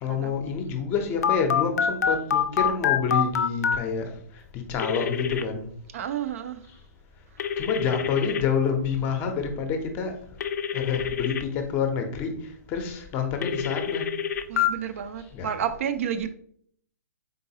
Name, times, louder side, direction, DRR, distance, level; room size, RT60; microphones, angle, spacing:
voice 1, 0.0-4.1 4.7-5.7 7.6-10.1 10.7-12.4 12.7-14.1 15.3-15.5, left 6 dB, 20° left, 0.6 m, -28 dB
Telephone, 1.2-3.8 4.8-5.4 7.4-8.4 10.4-11.4 13.4-14.7, left 8 dB, 70° left, 0.4 m, -25 dB
voice 2, 5.9-6.6 14.5-16.3, right 9 dB, 50° right, 0.4 m, -30 dB
3.8 x 3.8 x 2.7 m
hypercardioid pair, 150°, 9 cm